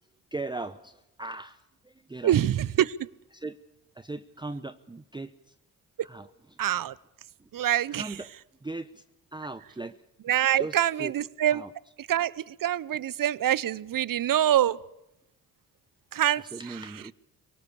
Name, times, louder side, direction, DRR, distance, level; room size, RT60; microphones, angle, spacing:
voice 1, 0.3-2.4 3.3-3.6 3.9-5.5 6.0-6.6 7.4-7.5 7.9-8.3 8.6-9.0 9.3-10.0 10.6-11.1 11.5-11.7 16.3-17.1, right 2 dB, 10° right, 0.8 m, -38 dB
voice 2, 2.2-2.9 6.6-6.9 7.5-8.1 10.3-11.6 12.1-14.8 16.1-16.4, right 11 dB, 50° right, 0.8 m, -25 dB
24.0 x 18.0 x 7.0 m
supercardioid pair, 50°, 43 cm